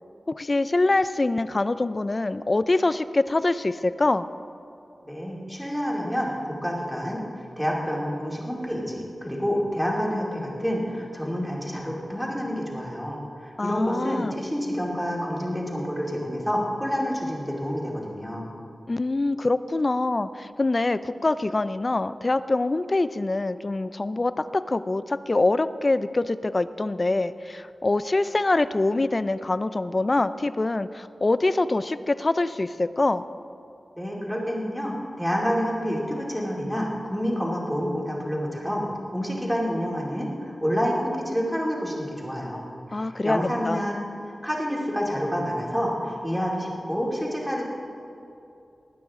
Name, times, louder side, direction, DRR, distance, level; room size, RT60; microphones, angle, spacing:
voice 1, 0.3-4.3 13.6-14.3 18.9-33.2 42.9-43.4 43.6-43.8, left 2 dB, 35° left, 14 dB, 0.4 m, -24 dB
voice 2, 5.1-18.4 33.9-38.8 39.1-42.6 42.9-43.9 44.3-47.7, equal, ahead, -3 dB, 2.6 m, -28 dB
20.0 x 9.3 x 3.7 m, 2.7 s
wide cardioid pair, 85°, 0 cm